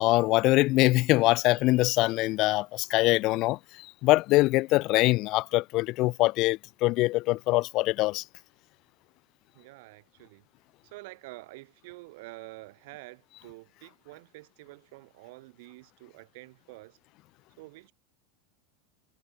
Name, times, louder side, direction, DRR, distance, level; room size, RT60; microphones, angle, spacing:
voice 1, 0.0-8.2, left 20 dB, 40° left, 0.6 m, -24 dB
voice 2, 9.5-10.4 10.8-17.0 17.6-17.9, right 23 dB, 60° right, 5.4 m, -48 dB
supercardioid pair, 160°, 0 cm